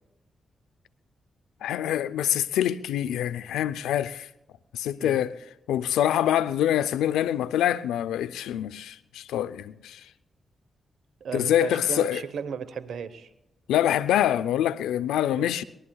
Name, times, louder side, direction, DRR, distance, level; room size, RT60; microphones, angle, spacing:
voice 1, 1.6-4.3 4.7-5.4 5.7-10.1 11.3-12.2 13.7-15.6, left 11 dB, 85° left, 0.5 m, -25 dB
voice 2, 11.2-13.3 15.3-15.5, right 7 dB, 75° right, 1.0 m, -35 dB
23.5 x 19.5 x 2.3 m
supercardioid pair, 45°, 0 cm